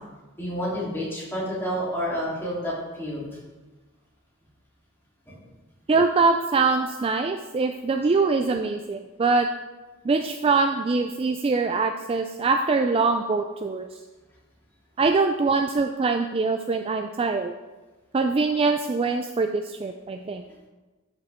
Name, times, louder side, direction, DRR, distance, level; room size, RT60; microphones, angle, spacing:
voice 1, 0.4-3.3, equal, 10° left, -7 dB, 3.1 m, -29 dB
voice 2, 5.9-9.5 10.0-13.9 15.0-17.5 18.1-20.4, right 4 dB, 25° right, 6 dB, 0.3 m, -23 dB
12.0 x 6.6 x 3.5 m, 1.2 s
head